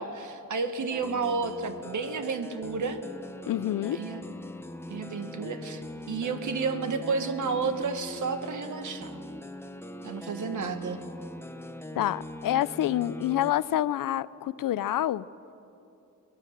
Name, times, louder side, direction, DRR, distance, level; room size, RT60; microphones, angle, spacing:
voice 1, 0.0-3.0 3.9-4.3 4.9-9.1 10.0-11.0, right 4 dB, 60° right, 8 dB, 1.4 m, -31 dB
sound 1, 0.9-13.5, left 1 dB, 5° left, 0.6 m, -41 dB
voice 2, 3.5-4.0 11.9-15.3, left 12 dB, 75° left, 18 dB, 0.5 m, -27 dB
23.0 x 19.0 x 6.6 m, 2.8 s
wide cardioid pair, 170°, 33 cm